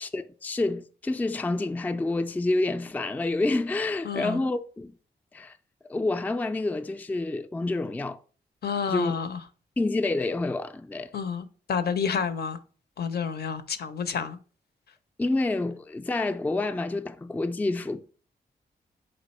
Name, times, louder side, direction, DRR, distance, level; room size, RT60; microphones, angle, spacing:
voice 1, 0.0-4.9 5.3-5.6 5.9-8.2 8.9-9.1 9.8-11.1 15.2-18.0, left 2 dB, 10° left, 0.3 m, -28 dB
voice 2, 4.0-4.4 8.6-9.4 11.1-12.6 13.0-14.4, left 6 dB, 65° left, 0.5 m, -29 dB
4.2 x 2.6 x 4.1 m
cardioid pair, 50°, 18 cm